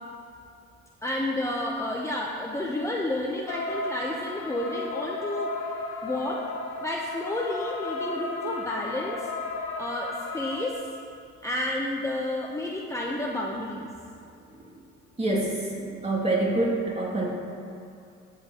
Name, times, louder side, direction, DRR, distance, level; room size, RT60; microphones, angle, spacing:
voice 1, 1.0-5.5 6.0-6.5 6.8-9.3 9.8-10.9 11.4-13.9, left 1 dB, 10° left, -2 dB, 0.8 m, -30 dB
sound 1, 3.5-10.7, left 3 dB, 80° left, 1.3 m, -34 dB
voice 2, 15.2-15.6 16.0-17.3, right 2 dB, 20° right, -4 dB, 2.4 m, -25 dB
13.0 x 8.3 x 3.0 m, 2.5 s
cardioid pair, 90°, 30 cm